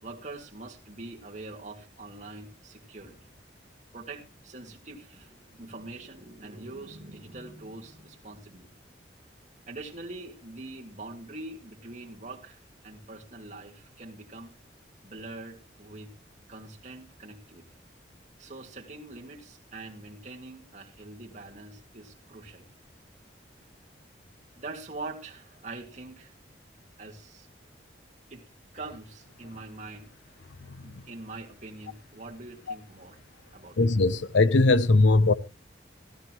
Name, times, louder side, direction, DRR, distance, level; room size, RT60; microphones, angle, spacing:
voice 1, 0.0-3.3 3.9-8.7 9.7-14.5 15.0-16.1 16.5-17.6 18.4-22.7 24.6-26.3 27.0-27.5 28.3-28.5 28.7-30.4 30.8-33.9, right 2 dB, 40° right, 2.0 m, -44 dB
voice 2, 33.8-35.3, left 3 dB, 80° left, 0.7 m, -20 dB
16.0 x 12.0 x 3.0 m
head